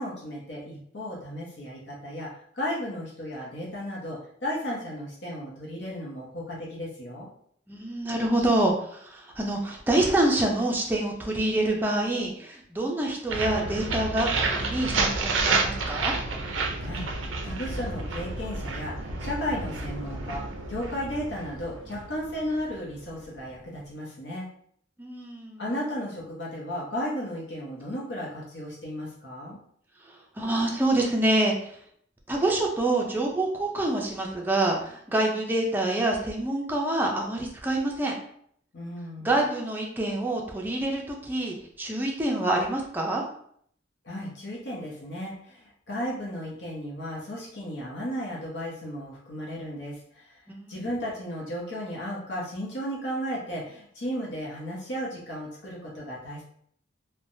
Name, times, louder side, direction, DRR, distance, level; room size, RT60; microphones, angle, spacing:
voice 1, 0.0-7.3 16.8-24.4 25.6-29.6 38.7-39.4 44.0-50.4 50.7-56.4, equal, 60° left, -4 dB, 0.8 m, -34 dB
voice 2, 7.7-14.3 14.6-16.1 25.0-25.6 30.4-31.5 32.3-38.2 39.2-43.2 50.5-50.9, right 1 dB, 10° right, -1 dB, 0.4 m, -26 dB
sound 1, 13.3-23.1, right 3 dB, 80° right, 0.5 m, -30 dB
3.2 x 2.1 x 2.6 m, 0.64 s
head